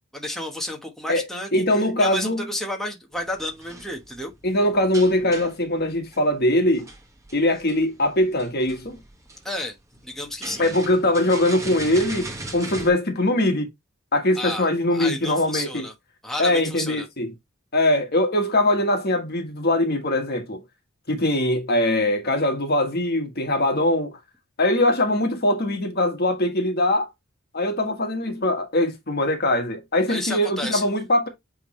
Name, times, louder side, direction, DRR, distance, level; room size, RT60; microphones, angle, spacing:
voice 1, 0.1-1.5 2.0-4.3 9.4-9.7 10.0-10.7 14.4-14.7 14.9-15.9 16.2-17.1 30.1-30.8, left 1 dB, ahead, 1.2 m, -31 dB
voice 2, 1.5-2.5 4.4-6.9 7.3-9.0 10.6-13.7 14.1-15.9 16.4-17.3 17.7-20.6 21.1-24.1 24.6-27.1 27.5-31.3, left 1 dB, 45° left, 1.5 m, -22 dB
sound 1, 3.1-12.9, right 2 dB, 15° right, 1.5 m, -40 dB
8.7 x 3.6 x 3.1 m
head